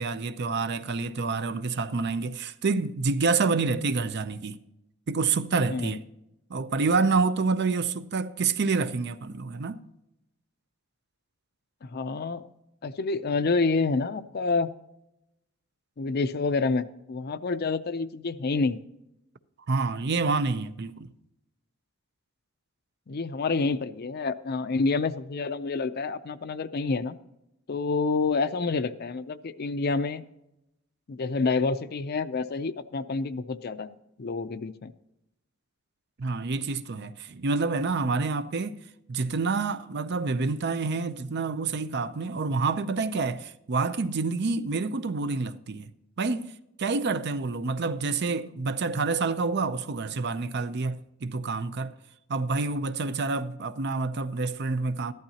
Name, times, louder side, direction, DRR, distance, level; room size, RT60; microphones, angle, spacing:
voice 1, 0.0-4.6 5.1-6.0 6.5-9.8 19.7-21.1 36.2-38.8 39.1-45.9 46.2-46.5 46.8-51.9 52.3-55.1, right 4 dB, 55° right, 0.5 m, -28 dB
voice 2, 11.8-12.5 12.8-14.7 16.0-18.8 23.1-27.2 27.7-30.2 31.1-34.9, left 4 dB, 50° left, 0.5 m, -28 dB
14.0 x 12.0 x 2.8 m
head